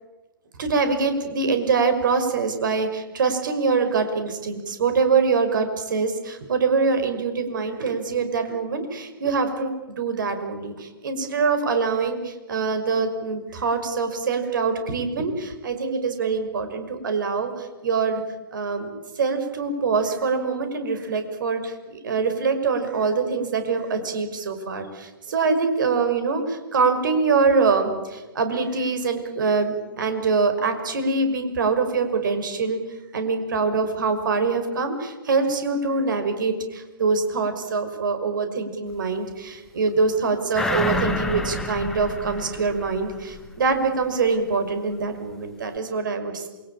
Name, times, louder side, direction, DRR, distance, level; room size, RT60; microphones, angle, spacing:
voice 1, 0.6-18.2 18.5-18.9 19.2-32.8 33.1-46.5, right 4 dB, 60° right, 8 dB, 5.8 m, -24 dB
sound 1, 40.5-43.5 43.8-43.9, left 2 dB, 5° left, 2.4 m, -28 dB
28.0 x 23.5 x 8.9 m, 1.2 s
figure-of-eight pair, 120°, 12 cm